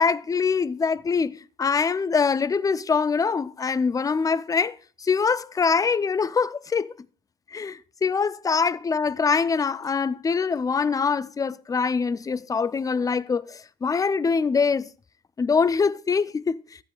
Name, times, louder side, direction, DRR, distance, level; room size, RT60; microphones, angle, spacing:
voice 1, 0.0-6.9 7.5-14.9 15.4-16.6, left 5 dB, 20° left, 0.4 m, -24 dB
13.0 x 10.0 x 2.3 m
cardioid pair, 110°, 17 cm